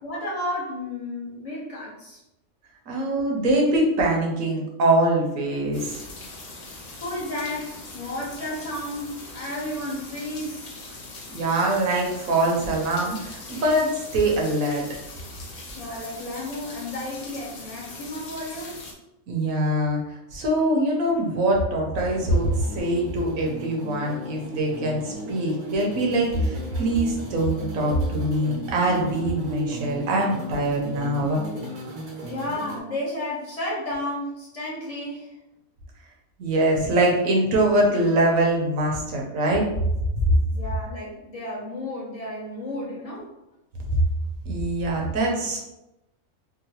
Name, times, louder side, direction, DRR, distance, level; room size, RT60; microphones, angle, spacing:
voice 1, 0.0-2.2 7.0-10.6 15.7-18.8 32.2-35.3 40.5-43.3, left 1 dB, 30° left, -5 dB, 0.9 m, -32 dB
voice 2, 2.9-6.0 11.3-14.8 19.3-20.0 20.3-31.4 36.4-39.6 44.5-45.6, right 1 dB, 80° right, -1 dB, 1.2 m, -23 dB
sound 1, 5.7-18.9, left 2 dB, 50° left, 0.5 m, -41 dB
sound 2, 21.9-32.8, right 2 dB, 40° right, 0.7 m, -36 dB
3.8 x 2.1 x 2.8 m, 0.90 s
omnidirectional pair, 1.4 m